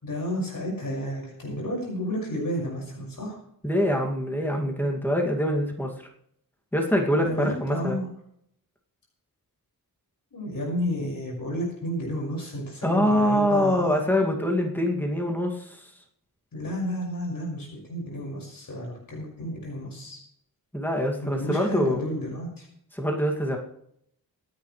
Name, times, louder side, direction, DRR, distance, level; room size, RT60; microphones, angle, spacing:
voice 1, 0.0-3.4 7.2-8.1 10.3-14.0 16.5-20.2 21.2-22.7, equal, 60° left, -2 dB, 5.7 m, -31 dB
voice 2, 3.6-5.9 6.7-8.0 12.8-15.8 20.7-22.0 22.9-23.6, equal, 5° left, 1 dB, 2.4 m, -24 dB
26.5 x 9.7 x 3.3 m, 0.72 s
wide cardioid pair, 150°, 37 cm